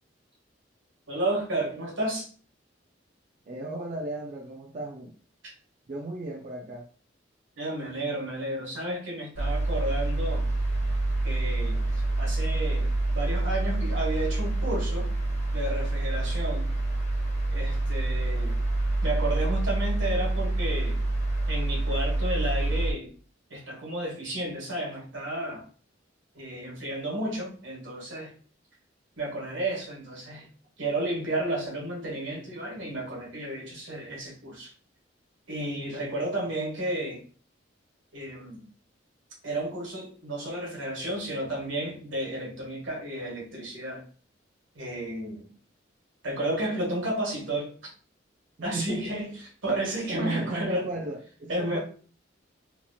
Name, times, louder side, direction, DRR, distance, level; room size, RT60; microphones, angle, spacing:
voice 1, 1.1-2.3 5.4-5.5 7.6-10.5 11.2-15.1 15.5-16.7 17.5-18.6 19.0-21.0 21.5-23.1 23.5-25.6 26.3-28.3 29.2-30.5 30.8-34.7 35.5-37.2 38.1-38.6 39.4-44.0 44.7-45.5 46.2-47.9 48.6-50.9 51.5-51.8, right 1 dB, 75° right, 1.3 m, -32 dB
voice 2, 3.5-5.1 5.9-6.9 36.0-36.3 48.6-49.0 50.1-51.8, right 2 dB, 40° right, 0.4 m, -35 dB
sound 1, 9.4-22.9, right 2 dB, 40° left, 0.7 m, -27 dB
2.9 x 2.4 x 2.6 m
head